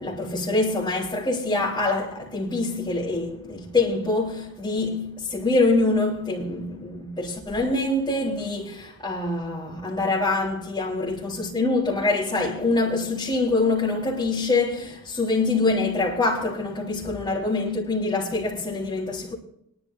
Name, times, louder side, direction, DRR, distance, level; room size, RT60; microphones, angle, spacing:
voice 1, 0.0-19.3, left 2 dB, 20° left, 3.9 m, -25 dB
23.5 x 12.5 x 2.7 m
head